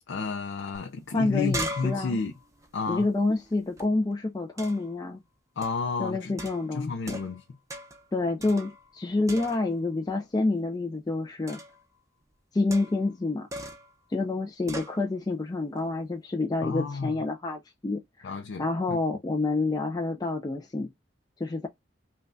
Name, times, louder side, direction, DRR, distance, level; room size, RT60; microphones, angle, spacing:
voice 1, 0.1-2.3 2.7-3.1 5.6-6.4 6.7-7.4 16.6-17.2 18.2-19.0, left 4 dB, 80° left, 0.4 m, -31 dB
sound 1, 0.7-0.8 1.1-3.8 4.6-5.0 5.6-5.9 6.4-7.4 7.7-8.1 8.4-9.0 9.3-9.9 11.5-11.8 12.7-13.1 13.5-13.9 14.7-15.0, right 1 dB, 15° right, 0.6 m, -39 dB
voice 2, 1.1-2.2 2.9-5.2 6.0-7.2 8.1-11.6 12.5-13.5 14.1-18.3 18.6-20.9 21.4-21.7, left 2 dB, 20° left, 0.4 m, -28 dB
5.4 x 2.2 x 2.5 m
head